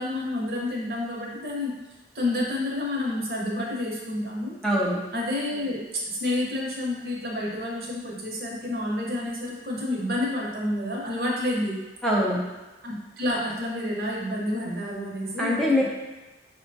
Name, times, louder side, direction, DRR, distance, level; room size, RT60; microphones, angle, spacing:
voice 1, 0.0-1.8 2.1-4.5 5.1-11.8 12.8-15.8, left 1 dB, 60° right, -3 dB, 0.8 m, -29 dB
voice 2, 4.6-5.0 12.0-12.4 15.4-15.8, left 1 dB, 5° left, -5 dB, 0.4 m, -23 dB
5.9 x 2.2 x 2.7 m, 1.1 s
head